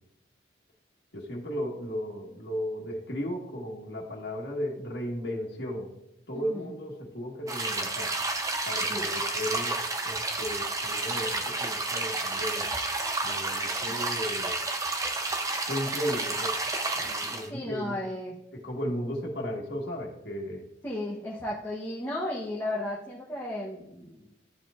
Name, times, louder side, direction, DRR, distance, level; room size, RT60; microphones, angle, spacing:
voice 1, 1.1-5.9 6.3-8.1 8.7-9.7 10.0-12.7 13.2-14.5 15.7-16.6 16.9-18.0 18.5-20.7, equal, 65° left, -2 dB, 1.6 m, -35 dB
voice 2, 6.3-6.7 8.9-9.1 17.5-18.4 20.8-24.3, left 1 dB, 15° left, -5 dB, 0.9 m, -34 dB
sound 1, 7.5-17.5, right 2 dB, 20° right, 0.6 m, -30 dB
13.0 x 4.5 x 2.5 m, 0.85 s
head